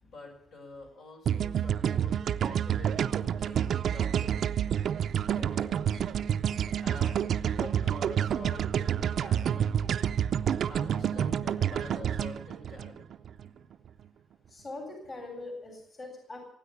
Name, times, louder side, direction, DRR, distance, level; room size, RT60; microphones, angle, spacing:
voice 1, 0.0-4.4 5.3-6.1 6.8-9.8 10.7-13.1, left 2 dB, 75° left, 1 dB, 6.3 m, -47 dB
sound 1, 1.2-13.5, right 9 dB, 65° right, 0.5 m, -29 dB
voice 2, 14.5-16.5, left 2 dB, 35° left, 3 dB, 3.6 m, -42 dB
17.5 x 9.2 x 8.5 m, 0.83 s
cardioid pair, 90°, 0 cm